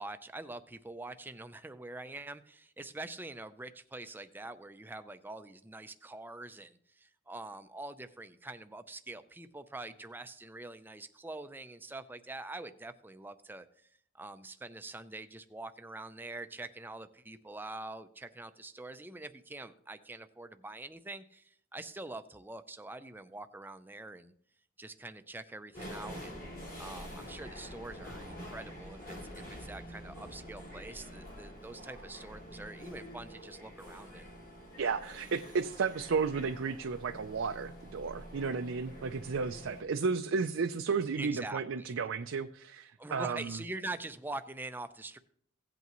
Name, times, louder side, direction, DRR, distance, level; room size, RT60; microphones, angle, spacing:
voice 1, 0.0-13.9 14.1-24.3 24.8-26.5 26.8-34.3 41.2-42.0 43.0-45.2, right 2 dB, 10° right, 10 dB, 0.5 m, -45 dB
sound 1, 25.7-39.8, equal, 50° left, 4.6 m, -47 dB
voice 2, 34.8-43.6, right 5 dB, 70° right, 7 dB, 0.5 m, -33 dB
16.5 x 8.2 x 3.0 m, 0.65 s
head